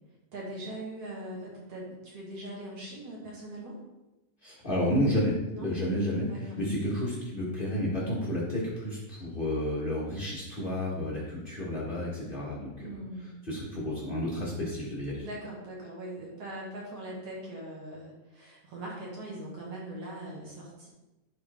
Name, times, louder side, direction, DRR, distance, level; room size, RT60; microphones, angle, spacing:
voice 1, 0.3-3.8 5.5-5.7 6.2-6.6 12.7-13.4 15.2-20.9, right 1 dB, 55° right, -4 dB, 2.5 m, -41 dB
voice 2, 4.4-12.9 13.5-15.2, left 1 dB, 60° left, -6 dB, 0.5 m, -31 dB
11.0 x 4.6 x 3.6 m, 1.0 s
omnidirectional pair, 3.8 m